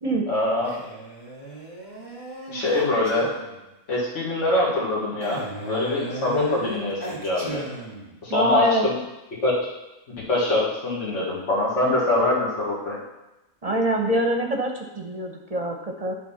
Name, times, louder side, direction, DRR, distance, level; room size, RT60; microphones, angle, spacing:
voice 1, 0.3-0.8 2.5-3.3 3.9-7.7 8.2-8.9 9.4-9.6 10.1-13.0, left 2 dB, 60° left, -6 dB, 2.1 m, -24 dB
Male speech man speaking, 0.6-3.6 5.2-8.2, right 2 dB, 15° left, 1.9 m, -35 dB
voice 2, 8.3-8.9 13.6-16.1, right 1 dB, 30° right, 1 dB, 0.9 m, -24 dB
11.0 x 3.7 x 5.7 m, 1.0 s
omnidirectional pair, 1.4 m